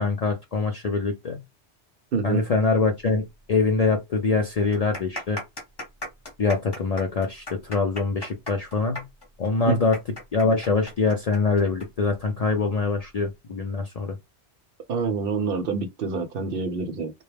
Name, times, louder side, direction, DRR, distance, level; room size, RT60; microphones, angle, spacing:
voice 1, 0.0-1.4 2.2-5.4 6.4-9.0 9.4-10.0 10.3-14.1, left 3 dB, 60° left, 0.4 m, -24 dB
voice 2, 2.1-2.4 9.7-9.8 14.9-17.1, right 4 dB, 60° right, 0.7 m, -26 dB
sound 1, 3.6-3.7 3.9-4.0 4.6-11.9 12.1-12.2 13.0-13.3, left 1 dB, 25° left, 0.9 m, -37 dB
2.3 x 2.0 x 3.2 m
omnidirectional pair, 1.2 m